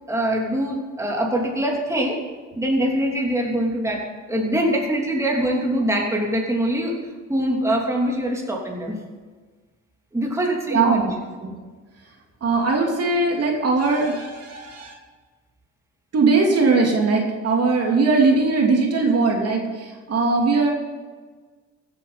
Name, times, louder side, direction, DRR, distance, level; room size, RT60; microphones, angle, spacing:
voice 1, 0.1-2.2 2.6-7.0 7.3-9.0 10.1-11.1, right 1 dB, 10° right, -1 dB, 3.0 m, -23 dB
voice 2, 10.7-11.1 11.4-11.6 12.4-14.9 16.1-20.7, right 3 dB, 55° right, 0 dB, 2.7 m, -20 dB
15.5 x 8.6 x 5.7 m, 1.4 s
cardioid pair, 90°, 30 cm